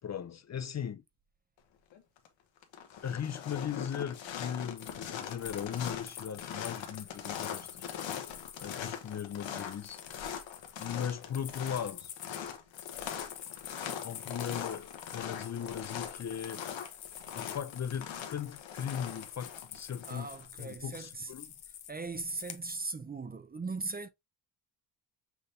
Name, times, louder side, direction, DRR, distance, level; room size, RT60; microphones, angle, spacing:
voice 1, 0.0-1.0 3.0-7.9 8.6-10.4 10.8-12.1 14.0-16.6 17.3-20.3 20.6-21.5, left 8 dB, 40° left, 0.5 m, -38 dB
sound 1, 1.9-2.3 2.6-20.5, left 8 dB, 85° left, 1.1 m, -41 dB
sound 2, 4.8-22.8, left 9 dB, 60° left, 0.9 m, -48 dB
voice 2, 20.1-21.3 21.9-24.1, right 3 dB, 20° right, 0.5 m, -39 dB
6.0 x 3.4 x 2.5 m
cardioid pair, 75°, 44 cm